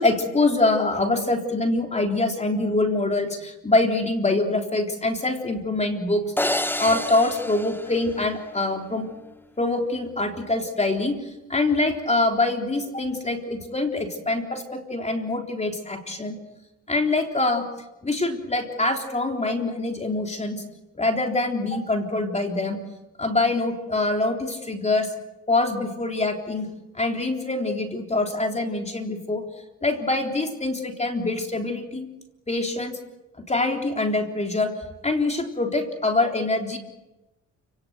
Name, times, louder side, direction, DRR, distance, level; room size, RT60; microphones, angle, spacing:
voice 1, 0.0-6.5 6.8-9.1 9.6-16.4 16.9-17.7 18.0-20.6 21.0-22.8 23.2-25.1 25.5-29.4 29.8-32.1 32.5-33.0 33.5-34.7 35.0-36.8, left 2 dB, 20° left, 3 dB, 3.7 m, -24 dB
sound 1, 6.4-8.7, left 1 dB, 5° left, 0.9 m, -29 dB
29.5 x 18.5 x 8.0 m, 1.0 s
cardioid pair, 90°, 30 cm